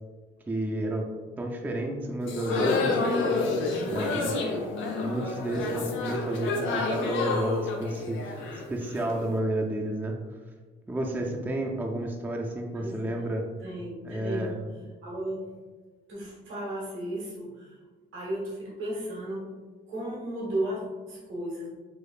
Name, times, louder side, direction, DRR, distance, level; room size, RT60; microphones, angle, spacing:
voice 1, 0.5-1.0 1.4-3.3 3.9-4.4 5.0-8.4 8.7-10.1 10.9-13.4 14.0-14.6, right 1 dB, 10° right, 0 dB, 0.4 m, -31 dB
sound 1, 2.2-9.2, left 3 dB, 75° left, 0.6 m, -29 dB
voice 2, 3.7-4.7 12.7-13.1 13.6-14.6 15.0-15.5 16.1-17.7 18.1-19.5 19.9-21.7, right 1 dB, 85° right, -6 dB, 1.2 m, -35 dB
5.0 x 2.0 x 2.4 m, 1.3 s
cardioid pair, 90°, 20 cm